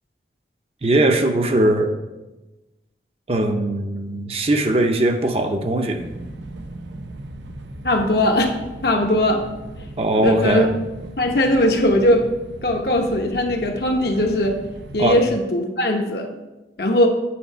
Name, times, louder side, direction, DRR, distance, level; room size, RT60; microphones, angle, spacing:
voice 1, 0.8-2.0 3.3-6.0 10.0-10.7 15.0-15.2, right 1 dB, 35° right, 5 dB, 0.6 m, -20 dB
sound 1, 6.0-15.3, right 2 dB, 85° right, 0.7 m, -38 dB
voice 2, 7.8-8.5 8.8-9.4 10.1-10.7 11.2-12.3 12.6-14.6 14.9-16.3 16.8-17.1, left 1 dB, 60° left, 3 dB, 0.9 m, -19 dB
8.5 x 4.2 x 5.4 m, 1.1 s
head